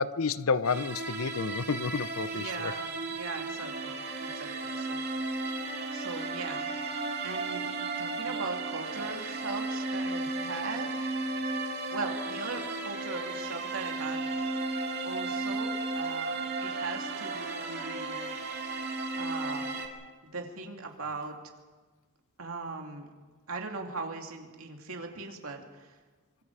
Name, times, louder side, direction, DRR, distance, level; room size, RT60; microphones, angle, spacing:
voice 1, 0.0-2.7, left 5 dB, 70° left, 0.6 m, -30 dB
sound 1, 0.6-19.9, right 3 dB, 50° right, 2.3 m, -34 dB
voice 2, 2.3-2.9 3.2-5.1 5.9-6.6 7.2-7.7 8.0-10.9 11.9-14.2 15.0-18.2 19.2-19.8 20.3-21.4 22.4-23.1 23.5-25.9, right 3 dB, 70° right, 2.7 m, -39 dB
25.0 x 23.5 x 4.9 m
head